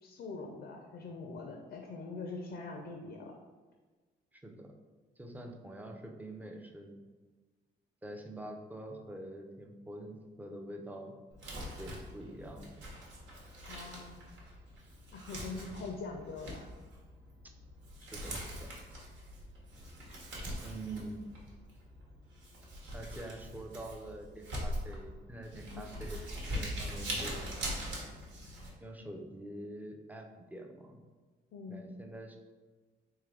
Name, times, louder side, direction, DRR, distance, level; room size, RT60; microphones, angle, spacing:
voice 1, 0.0-3.3 13.6-14.2 15.1-16.7 25.7-25.9 31.5-31.9, left 3 dB, 60° left, 2 dB, 0.5 m, -43 dB
voice 2, 4.3-4.7 5.2-7.0 8.0-11.2 11.8-12.9 15.3-15.6 18.0-18.7 20.6-21.2 22.9-27.5 28.8-31.0 31.7-32.4, right 1 dB, 10° right, 3 dB, 0.5 m, -46 dB
Crumpling crinkling, 11.3-28.7, equal, 75° right, 1.1 m, -42 dB
3.7 x 3.1 x 3.3 m, 1.3 s
cardioid pair, 90°, 20 cm